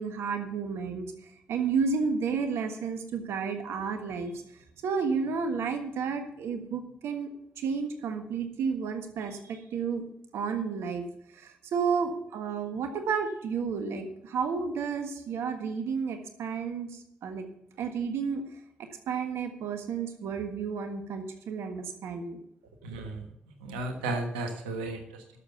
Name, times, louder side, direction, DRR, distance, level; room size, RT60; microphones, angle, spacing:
voice 1, 0.0-4.3 4.8-7.3 7.6-10.1 10.3-11.0 11.3-17.5 17.8-18.4 18.8-22.4, right 5 dB, 70° right, 7 dB, 1.5 m, -31 dB
voice 2, 22.8-23.3 23.6-25.2, right 2 dB, 90° right, 5 dB, 1.3 m, -34 dB
11.5 x 7.1 x 6.8 m, 0.80 s
hypercardioid pair, 40°, 5 cm